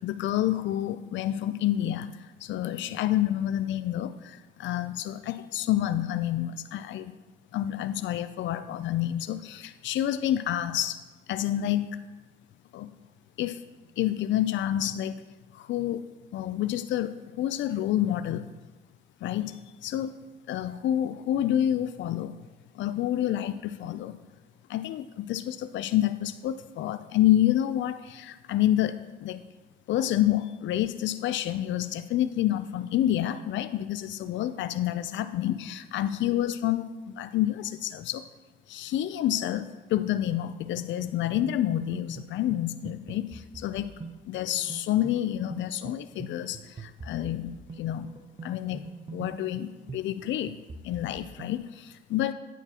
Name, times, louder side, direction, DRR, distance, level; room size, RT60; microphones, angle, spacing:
voice 1, 0.0-2.1 2.4-7.2 7.5-11.0 11.3-11.9 12.7-12.9 13.4-13.6 14.0-15.2 15.5-16.0 16.3-18.5 19.2-19.6 19.8-20.1 20.5-22.4 22.7-24.2 24.7-29.4 29.9-38.3 38.7-43.9 44.2-48.1 48.4-48.8 49.1-50.5 50.8-52.3, left 12 dB, 70° left, 12 dB, 0.4 m, -28 dB
sound 1, 40.3-51.6, right 4 dB, 30° right, 0.7 m, -44 dB
9.0 x 9.0 x 2.9 m, 1.2 s
cardioid pair, 90°, 20 cm